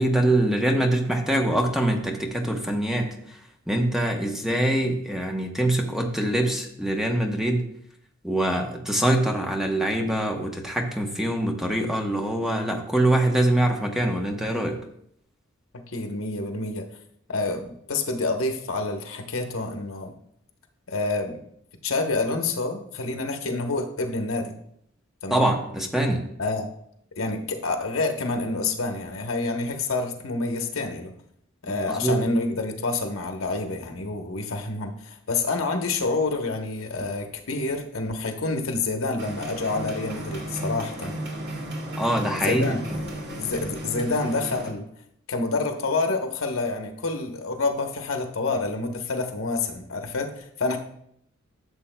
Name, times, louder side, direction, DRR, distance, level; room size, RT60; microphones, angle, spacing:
voice 1, 0.0-3.4 3.7-7.6 8.2-14.8 25.3-26.3 31.9-32.2 42.0-43.0, right 1 dB, ahead, 2 dB, 0.9 m, -24 dB
voice 2, 15.7-16.8 17.3-20.1 20.9-21.4 21.8-24.5 25.2-25.5 26.4-26.7 27.2-31.1 31.6-41.1 42.4-42.8 43.4-44.9 45.3-50.8, left 3 dB, 80° left, 4 dB, 1.0 m, -28 dB
sound 1, 39.2-44.7, right 1 dB, 55° right, 2.0 m, -34 dB
12.5 x 7.0 x 2.2 m, 0.71 s
head